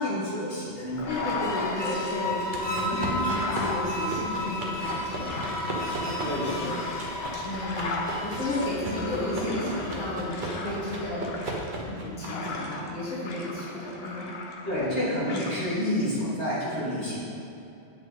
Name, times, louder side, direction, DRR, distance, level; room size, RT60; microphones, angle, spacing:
voice 1, 0.0-1.5 6.2-6.8 14.6-17.2, left 1 dB, 90° left, -9 dB, 2.4 m, -29 dB
sound 1, 0.9-2.2 2.7-12.9 13.2-15.0 15.3-15.5, left 2 dB, 65° left, 1.0 m, -37 dB
sound 2, 0.9-10.3, left 2 dB, 25° left, 0.7 m, -33 dB
voice 2, 1.1-11.4 11.8-14.6, left 1 dB, 45° left, -8 dB, 1.9 m, -33 dB
sound 3, 2.3-12.7, right 2 dB, 50° right, 1.1 m, -37 dB
8.5 x 5.6 x 4.1 m, 2.8 s
omnidirectional pair, 1.1 m